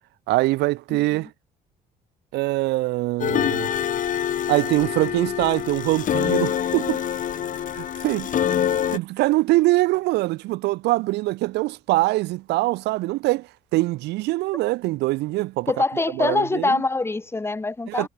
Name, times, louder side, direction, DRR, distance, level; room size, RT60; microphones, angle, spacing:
voice 1, 0.3-1.3 2.3-3.7 4.5-7.0 7.8-8.3 8.9-15.7 16.2-16.8 17.9-18.1, right 19 dB, 85° right, 1.0 m, -23 dB
voice 2, 0.9-1.2 15.7-18.1, left 3 dB, 15° left, 2.4 m, -24 dB
sound 1, 3.2-9.0, left 9 dB, 50° left, 2.8 m, -25 dB
cardioid pair, 110°, 17 cm